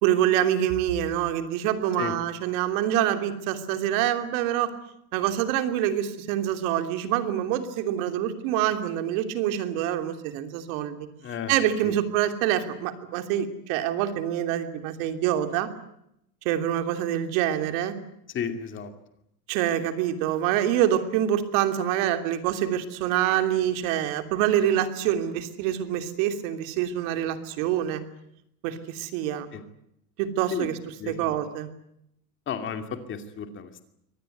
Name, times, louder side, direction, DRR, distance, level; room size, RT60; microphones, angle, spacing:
voice 1, 0.0-4.7 5.1-11.1 11.5-15.7 16.4-17.9 19.5-28.0 28.6-29.5 30.2-30.7 31.1-31.7, right 11 dB, 60° right, 8 dB, 3.1 m, -26 dB
voice 2, 11.2-11.5 11.8-12.0 18.3-18.9 29.5-29.6 30.5-30.7 31.0-31.4 32.5-33.8, left 7 dB, 25° left, 8 dB, 2.6 m, -33 dB
24.0 x 19.0 x 9.3 m, 0.76 s
cardioid pair, 165°, 45 cm